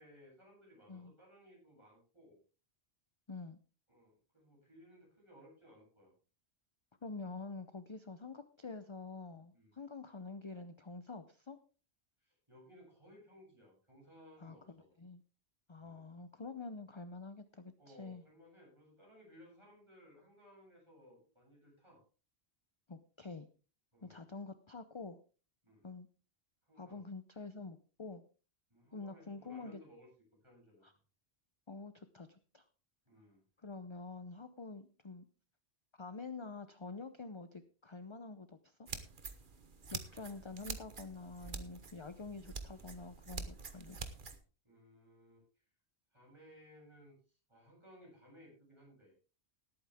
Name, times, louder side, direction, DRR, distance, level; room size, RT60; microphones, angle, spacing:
voice 1, 0.0-2.4 3.9-6.1 9.5-9.7 12.2-14.9 15.8-16.0 17.8-22.0 23.9-24.2 25.6-25.8 26.6-27.0 28.7-30.1 30.4-30.8 33.0-33.4 44.6-45.4 46.1-49.1, equal, 25° right, -3 dB, 8.2 m, -60 dB
voice 2, 3.3-3.6 7.0-11.6 14.4-15.2 15.7-18.2 22.9-23.5 24.0-25.2 25.8-26.1 26.8-28.2 28.9-29.8 30.8-30.9 31.7-32.7 33.6-35.3 35.9-38.9 39.9-44.0, left 3 dB, 30° left, 10 dB, 0.7 m, -47 dB
sound 1, 38.9-44.4, right 4 dB, 50° right, 1.4 m, -46 dB
19.0 x 8.8 x 3.6 m, 0.36 s
omnidirectional pair, 1.1 m